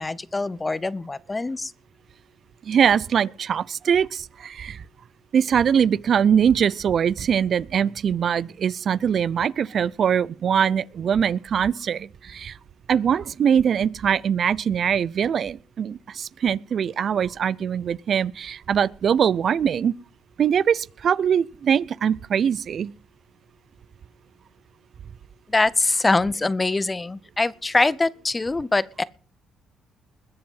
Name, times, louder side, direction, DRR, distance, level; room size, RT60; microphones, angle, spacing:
voice 1, 0.0-1.7 25.5-29.0, left 3 dB, 20° left, 0.7 m, -23 dB
voice 2, 2.6-4.8 5.3-12.6 12.9-19.9 20.4-22.9, right 8 dB, 55° right, 0.5 m, -22 dB
21.0 x 7.7 x 5.6 m
cardioid pair, 90°, 0 cm